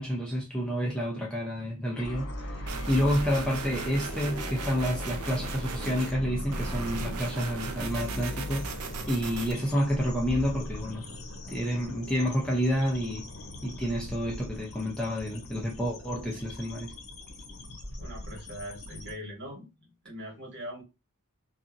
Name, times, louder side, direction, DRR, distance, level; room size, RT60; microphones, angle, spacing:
voice 1, 0.0-8.7 9.1-11.1 11.5-13.3 13.6-16.9, equal, 5° left, 0.5 m, -29 dB
sound 1, 2.0-19.1, left 1 dB, 65° left, 0.7 m, -40 dB
sound 2, 2.7-6.1 6.5-9.5, right 3 dB, 80° right, 0.5 m, -37 dB
voice 2, 18.0-20.8, equal, 50° right, 1.4 m, -41 dB
2.8 x 2.4 x 2.5 m
head